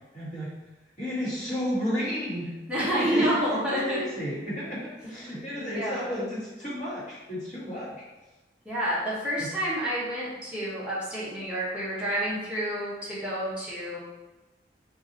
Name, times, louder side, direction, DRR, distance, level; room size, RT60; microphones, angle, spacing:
voice 1, 0.1-0.5 1.0-8.0 9.4-9.5, equal, 40° left, -8 dB, 1.4 m, -33 dB
voice 2, 2.7-4.0 5.6-6.1 8.6-14.0, equal, 5° right, -9 dB, 0.9 m, -29 dB
2.7 x 2.6 x 3.8 m, 1.1 s
head